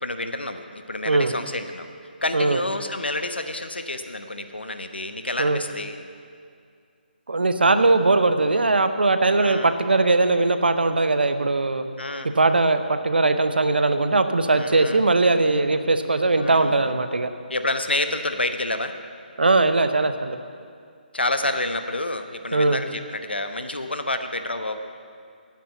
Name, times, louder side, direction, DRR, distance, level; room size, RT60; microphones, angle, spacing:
voice 1, 0.0-1.9 2.2-6.0 9.4-9.7 12.0-12.3 14.5-15.0 16.3-16.9 17.5-18.9 21.1-24.8, left 2 dB, 80° left, 8 dB, 1.0 m, -29 dB
voice 2, 7.3-11.8 12.4-17.3 19.4-20.4 22.5-22.8, right 3 dB, 70° right, 9 dB, 0.8 m, -20 dB
9.5 x 8.7 x 8.3 m, 2.3 s
figure-of-eight pair, 145°, 6 cm